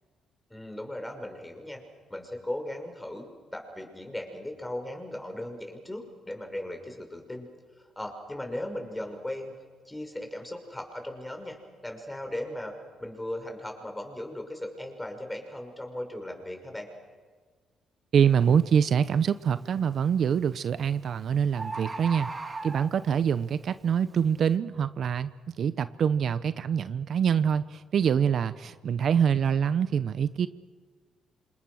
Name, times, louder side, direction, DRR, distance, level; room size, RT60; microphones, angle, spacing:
voice 1, 0.5-1.8 2.1-7.5 7.8-9.5 9.9-16.9, left 1 dB, 10° left, 4 dB, 5.8 m, -37 dB
voice 2, 18.1-22.3 22.6-25.3 25.6-30.5, right 7 dB, 60° right, 13 dB, 0.8 m, -25 dB
Bird, 18.3-18.5 19.1-19.5 20.5-20.6 20.9-21.0 21.2-21.3 21.6-23.3 23.9-24.0, right 3 dB, 25° right, 2.4 m, -37 dB
28.0 x 27.0 x 6.5 m, 1.5 s
cardioid pair, 90°, 0 cm